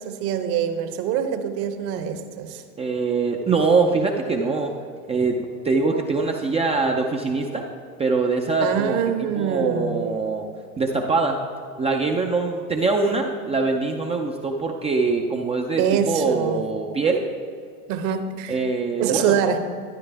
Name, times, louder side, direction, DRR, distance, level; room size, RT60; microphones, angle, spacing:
voice 1, 0.0-2.6 8.6-10.2 15.8-16.6 17.9-18.6 19.0-19.6, right 8 dB, 50° right, 7 dB, 1.1 m, -24 dB
voice 2, 2.8-4.7 5.1-5.4 5.6-7.6 8.0-9.0 9.4-10.5 10.8-11.4 11.8-17.2 18.5-19.3, right 4 dB, 15° right, 1 dB, 0.5 m, -23 dB
12.0 x 9.3 x 3.4 m, 2.3 s
hypercardioid pair, 115°, 47 cm